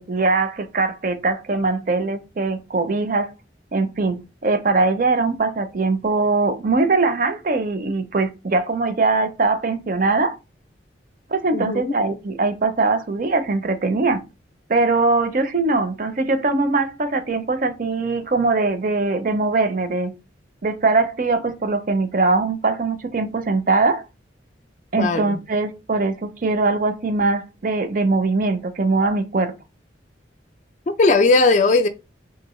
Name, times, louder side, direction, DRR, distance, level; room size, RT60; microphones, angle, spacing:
voice 1, 0.0-3.3 3.7-10.4 11.3-14.2 14.7-20.1 20.6-24.0 24.9-29.5, right 3 dB, 45° right, 0.5 m, -21 dB
voice 2, 11.5-11.9 25.0-25.4 31.0-31.9, left 3 dB, 40° left, 0.3 m, -17 dB
3.7 x 2.5 x 3.0 m
head